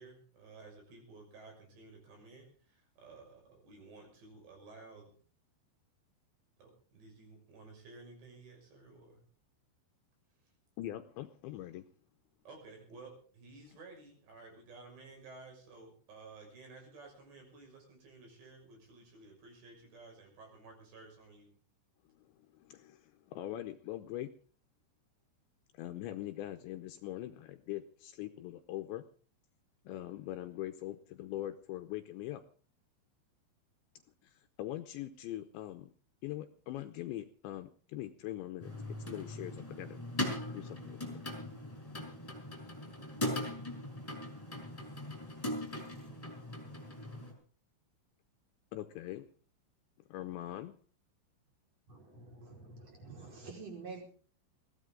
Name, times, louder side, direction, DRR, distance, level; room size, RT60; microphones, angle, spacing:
voice 1, 0.0-5.2 6.6-9.2 10.4-10.5 12.4-21.5, right 3 dB, 60° right, 1 dB, 8.2 m, -54 dB
voice 2, 10.8-11.9 22.2-24.3 25.7-29.0 29.8-32.4 34.2-35.9 36.2-40.0 40.5-41.2 48.7-49.3 50.1-50.8, left 14 dB, 75° left, 8 dB, 2.9 m, -42 dB
sound 1, 38.6-47.3, left 1 dB, 5° left, 4.8 m, -40 dB
voice 3, 51.9-54.0, right 4 dB, 35° right, 1 dB, 5.6 m, -48 dB
21.0 x 16.0 x 3.9 m, 0.42 s
omnidirectional pair, 5.8 m